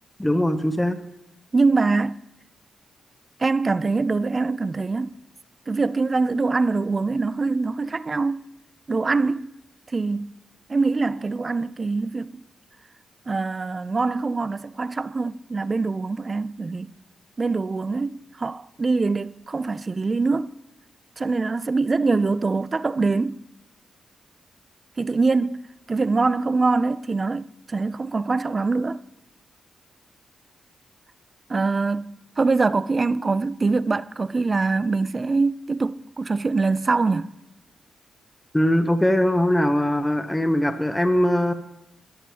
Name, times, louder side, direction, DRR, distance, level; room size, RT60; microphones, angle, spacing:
voice 1, 0.2-1.0 38.5-41.5, left 1 dB, 10° left, 0.7 m, -21 dB
voice 2, 1.5-2.2 3.4-5.1 5.7-8.4 8.9-9.5 9.9-10.4 10.7-12.4 13.3-16.9 17.4-20.5 21.2-23.4 25.0-29.0 31.5-37.3, right 3 dB, 35° right, 0.3 m, -24 dB
13.5 x 11.0 x 2.8 m
cardioid pair, 90°, 0 cm